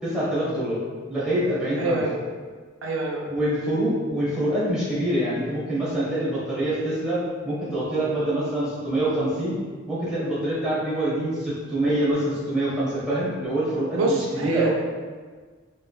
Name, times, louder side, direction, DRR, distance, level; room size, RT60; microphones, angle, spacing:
voice 1, 0.0-0.8 1.1-2.0 3.3-9.6 9.9-14.7, right 1 dB, 5° right, -10 dB, 0.9 m, -25 dB
voice 2, 1.8-2.2 2.8-3.2 13.9-14.7, right 2 dB, 80° right, -1 dB, 0.4 m, -25 dB
3.1 x 3.0 x 2.3 m, 1.5 s
head